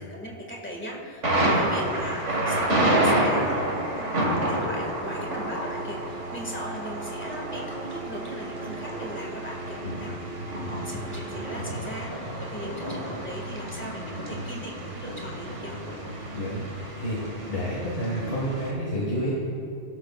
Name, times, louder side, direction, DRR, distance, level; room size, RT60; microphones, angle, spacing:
voice 1, 0.0-15.8, equal, 10° left, -2 dB, 2.0 m, -38 dB
Thunder, 1.2-18.7, right 1 dB, 85° right, 2.3 m, -29 dB
sound 1, 4.9-11.7, right 4 dB, 10° right, 1.3 m, -41 dB
voice 2, 16.3-16.6 17.0-17.2 17.5-19.3, equal, 75° left, -5 dB, 2.2 m, -29 dB
17.0 x 13.0 x 2.5 m, 2.4 s
omnidirectional pair, 1.2 m